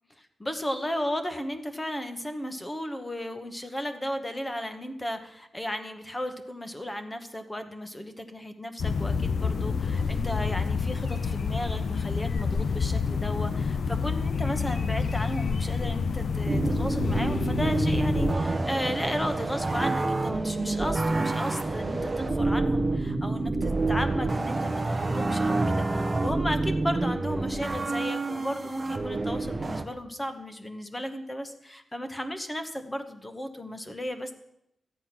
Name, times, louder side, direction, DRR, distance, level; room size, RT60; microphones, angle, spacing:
voice 1, 0.2-34.3, equal, 10° left, 8 dB, 1.0 m, -34 dB
sound 1, 8.8-18.3, left 5 dB, 60° left, 0.5 m, -28 dB
sound 2, 16.5-29.8, right 2 dB, 20° right, 0.9 m, -28 dB
13.0 x 9.8 x 5.9 m, 0.81 s
wide cardioid pair, 180°, 0 cm